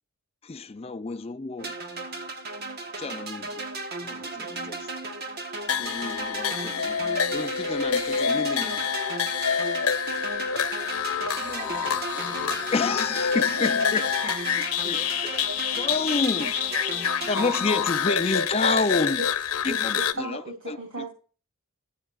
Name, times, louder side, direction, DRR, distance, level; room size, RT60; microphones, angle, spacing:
voice 1, 0.4-1.7 3.0-3.6 4.0-4.9 5.8-8.8 11.4-11.9 12.7-15.0 15.8-16.5 17.3-19.2 19.6-20.4 20.7-21.0, left 3 dB, 30° left, 0.4 m, -29 dB
sound 1, 1.6-17.7, right 3 dB, 45° right, 1.3 m, -35 dB
sound 2, 5.7-20.1, left 7 dB, 90° left, 0.7 m, -27 dB
voice 2, 11.4-13.9 14.9-15.5 15.9-17.3, right 2 dB, 20° right, 1.9 m, -47 dB
voice 3, 19.7-21.1, right 1 dB, 80° right, 3.1 m, -35 dB
17.5 x 8.9 x 2.4 m
head